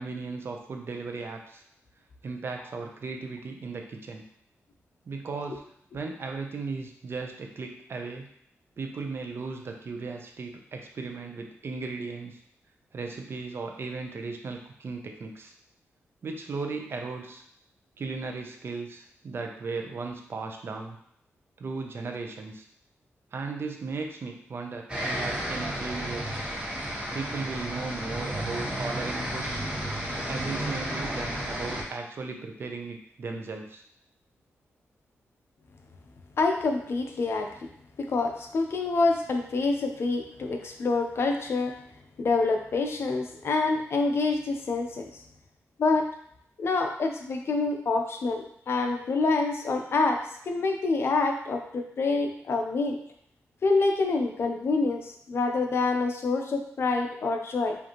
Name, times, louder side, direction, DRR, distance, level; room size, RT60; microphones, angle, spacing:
voice 1, 0.0-1.6 2.2-4.2 5.1-5.6 5.9-8.3 8.8-12.4 12.9-15.5 16.2-17.4 18.0-21.0 21.6-22.6 23.3-26.4 27.1-29.5 30.3-33.8, right 4 dB, 50° right, 3 dB, 0.6 m, -36 dB
sound 1, 24.9-31.8, equal, 20° right, 1.3 m, -32 dB
voice 2, 36.4-37.5 38.0-41.7 42.2-45.1 45.8-46.1 46.6-50.2 50.5-53.0 53.6-57.8, left 3 dB, 55° left, 3 dB, 0.6 m, -26 dB
5.1 x 2.6 x 2.9 m, 0.69 s
cardioid pair, 95°, 5 cm